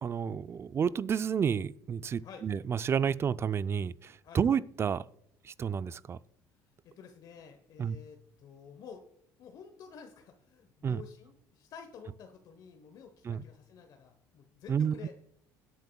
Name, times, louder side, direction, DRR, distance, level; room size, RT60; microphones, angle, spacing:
voice 1, 0.0-5.0 5.4-6.2 7.8-8.0 10.8-11.0 13.2-13.4 14.7-14.9, right 7 dB, 35° right, 0.4 m, -30 dB
voice 2, 6.8-9.0 9.4-15.1, left 6 dB, 60° left, 1.0 m, -51 dB
21.5 x 8.4 x 2.3 m
supercardioid pair, 90°, 8 cm